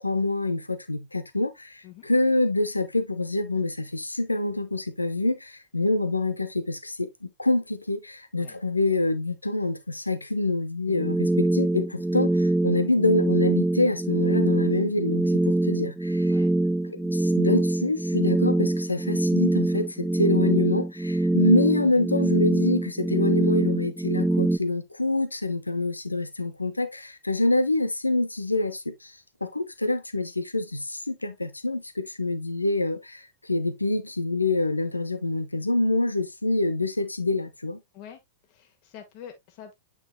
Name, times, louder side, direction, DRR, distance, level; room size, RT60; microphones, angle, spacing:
voice 1, 0.0-15.3 15.6-16.4 16.8-29.1 29.4-37.8, left 2 dB, 90° left, 1.0 m, -26 dB
sound 1, 10.9-24.6, right 2 dB, 5° right, 0.3 m, -24 dB
voice 2, 38.5-39.7, left 8 dB, 45° left, 1.8 m, -45 dB
9.1 x 5.6 x 2.3 m
figure-of-eight pair, 100°, 0 cm